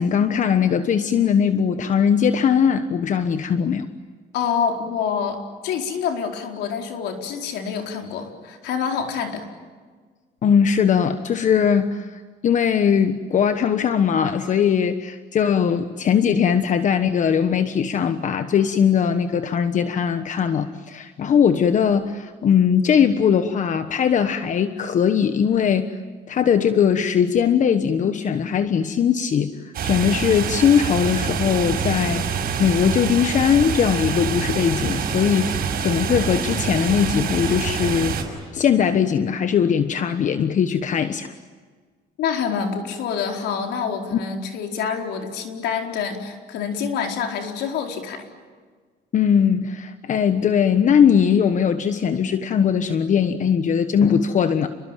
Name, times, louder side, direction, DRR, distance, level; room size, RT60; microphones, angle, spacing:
voice 1, 0.0-3.9 10.4-25.9 26.3-38.2 38.5-41.3 44.1-44.2 49.1-54.7, left 7 dB, 45° left, 9 dB, 1.3 m, -20 dB
voice 2, 4.3-9.4 42.2-48.3, left 6 dB, 80° left, 3 dB, 4.6 m, -27 dB
sound 1, 29.7-38.2, right 7 dB, 60° right, 6.3 m, -26 dB
29.5 x 22.0 x 9.1 m, 1.5 s
cardioid pair, 110°, 17 cm